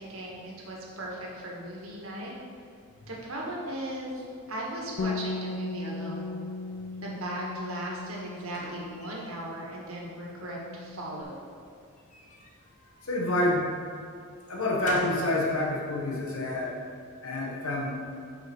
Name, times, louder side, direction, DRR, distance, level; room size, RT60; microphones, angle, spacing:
voice 1, 0.0-2.3 3.1-6.3 7.0-11.4, right 1 dB, 70° right, -3 dB, 1.5 m, -37 dB
Bass guitar, 5.0-9.7 9.9-11.2, left 3 dB, 55° left, 0.4 m, -37 dB
sound 1, 8.3-9.8 10.2-11.0 12.0-13.4 14.0-15.3, left 1 dB, 35° left, 0.8 m, -44 dB
voice 2, 13.0-13.7 14.5-16.7 17.2-17.9, left 1 dB, 70° left, -2 dB, 1.1 m, -28 dB
6.2 x 5.5 x 4.4 m, 2.4 s
head